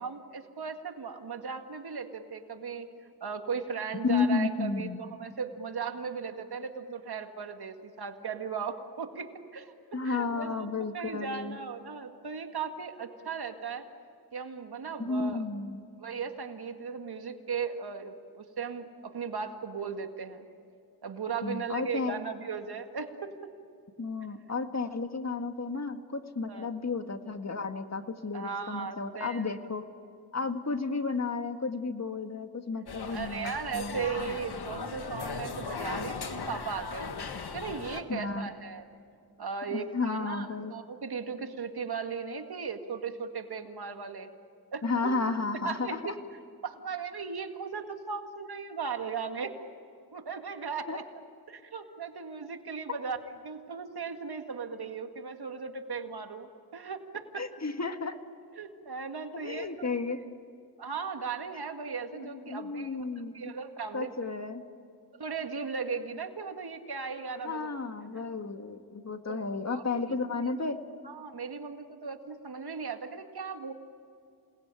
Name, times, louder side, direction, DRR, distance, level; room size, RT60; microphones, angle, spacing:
voice 1, 0.0-10.7 10.9-13.9 14.3-15.5 16.0-20.5 21.0-23.5 26.5-26.7 28.3-29.5 33.1-37.1 37.5-38.8 39.4-44.3 44.7-45.1 45.6-46.1 46.6-49.5 50.1-51.0 51.5-53.2 53.4-57.4 58.6-60.0 60.8-63.1 63.3-64.1 65.2-67.7 69.3-69.4 69.7-69.8 70.1-70.5 71.1-73.7, right 5 dB, 75° right, 6 dB, 2.1 m, -37 dB
voice 2, 4.0-5.0 9.9-11.6 15.0-15.8 21.4-22.2 24.0-29.8 30.3-34.0 38.1-38.5 39.7-40.7 44.8-46.1 50.9-51.0 57.4-58.2 59.3-60.2 62.1-63.5 63.9-64.6 67.4-70.8, left 4 dB, 40° left, 7 dB, 1.9 m, -32 dB
sound 1, 32.9-38.0, left 5 dB, 75° left, 1.8 m, -38 dB
28.0 x 19.5 x 9.1 m, 2.4 s
cardioid pair, 55°, 39 cm